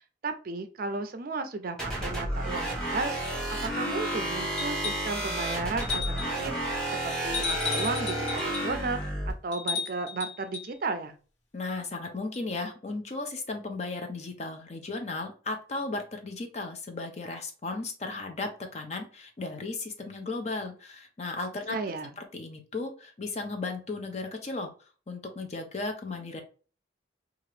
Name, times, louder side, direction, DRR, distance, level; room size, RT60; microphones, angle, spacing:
voice 1, 0.0-3.4 3.6-6.8 7.0-11.1 21.7-22.1, right 3 dB, 50° right, 8 dB, 0.4 m, -34 dB
sound 1, 1.8-9.3, right 1 dB, 5° left, 0.8 m, -31 dB
Glass Bell Ringing, 4.6-5.2 5.8-6.4 7.3-8.7 9.5-10.7 12.3-12.4, left 6 dB, 75° left, 1.0 m, -34 dB
voice 2, 11.5-21.8 22.2-24.7 25.1-26.4, left 3 dB, 35° left, 4 dB, 0.5 m, -35 dB
2.8 x 2.4 x 3.2 m, 0.38 s
head